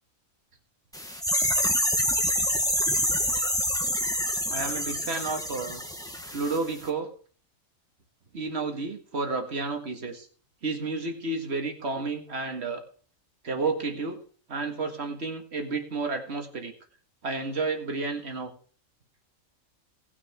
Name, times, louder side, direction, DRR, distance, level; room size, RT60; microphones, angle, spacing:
sound 1, 0.9-6.6 6.8-6.9, equal, 5° left, 1.5 m, -27 dB
voice 1, 4.5-5.8 6.3-7.1 8.3-10.3 10.6-12.8 13.4-14.2 14.5-16.7 17.2-18.5, right 3 dB, 50° right, 5 dB, 2.0 m, -31 dB
18.5 x 6.5 x 4.5 m, 0.42 s
omnidirectional pair, 1.4 m